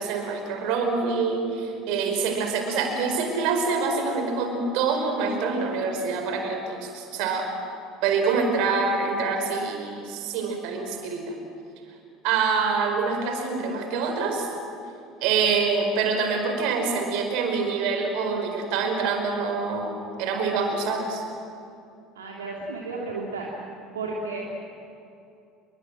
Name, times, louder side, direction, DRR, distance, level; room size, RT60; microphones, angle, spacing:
voice 1, 0.0-7.5 8.0-11.4 12.2-14.5 15.2-21.2, right 4 dB, 60° right, 5 dB, 5.1 m, -26 dB
voice 2, 22.1-23.5 23.9-24.4, right 3 dB, 75° right, -2 dB, 2.9 m, -33 dB
28.0 x 23.0 x 7.7 m, 2.6 s
figure-of-eight pair, 65°, 0 cm